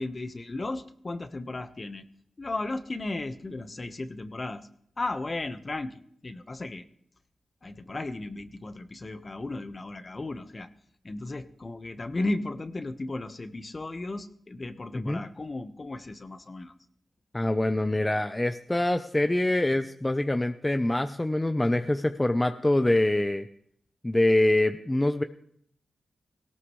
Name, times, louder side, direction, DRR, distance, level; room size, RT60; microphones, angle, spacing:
voice 1, 0.0-2.1 2.4-4.7 5.0-6.8 7.6-10.7 11.0-16.7, left 2 dB, 35° left, 9 dB, 1.3 m, -35 dB
voice 2, 17.3-23.5 24.0-25.2, left 1 dB, 15° left, 8 dB, 0.8 m, -25 dB
18.5 x 17.5 x 3.2 m, 0.66 s
cardioid pair, 60°, 0 cm